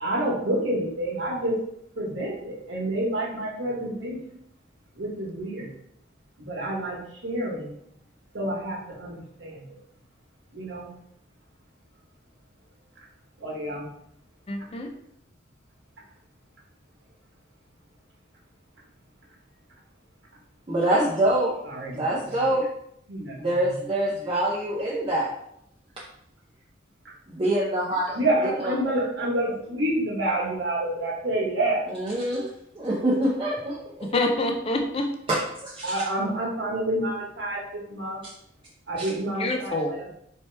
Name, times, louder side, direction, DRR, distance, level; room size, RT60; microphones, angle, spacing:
voice 1, 0.0-1.5 1.9-4.2 5.0-5.7 6.4-7.7 8.3-9.1 9.4-9.6 10.5-10.9 13.4-13.9 21.7-22.0 23.1-23.4 28.1-31.8 35.8-38.2 38.9-40.1, right 1 dB, 70° right, -3 dB, 1.3 m, -28 dB
voice 2, 14.5-14.9 34.0-35.1 39.4-39.9, left 2 dB, 30° left, 2 dB, 0.4 m, -26 dB
voice 3, 20.7-21.5 21.9-22.6 23.4-25.3 27.3-28.7 31.9-34.1 35.3-35.4 35.6-36.0 39.0-39.1, right 1 dB, 25° right, -6 dB, 0.6 m, -25 dB
4.4 x 2.8 x 3.3 m, 0.72 s
head